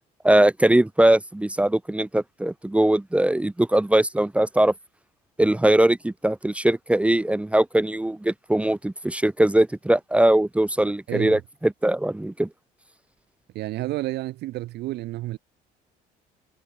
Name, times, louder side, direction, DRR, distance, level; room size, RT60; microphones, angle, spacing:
voice 1, 0.2-4.7 5.4-12.5, right 1 dB, 5° right, 1.1 m, -21 dB
voice 2, 11.1-11.4 13.5-15.4, right 17 dB, 80° right, 3.4 m, -30 dB
cardioid pair, 110°, 17 cm